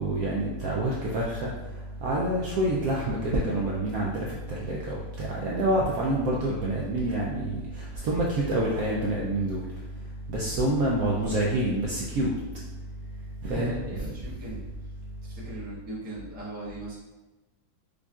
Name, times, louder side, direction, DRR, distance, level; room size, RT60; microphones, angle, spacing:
voice 1, 0.0-1.5 2.0-4.1 4.5-9.6 10.3-12.3 13.4-13.8, right 1 dB, 70° right, -4 dB, 0.8 m, -27 dB
voice 2, 11.0-11.4 13.4-14.6 15.2-17.0, right 2 dB, 10° right, -8 dB, 0.5 m, -39 dB
5.0 x 2.4 x 2.3 m, 1.1 s
omnidirectional pair, 1.9 m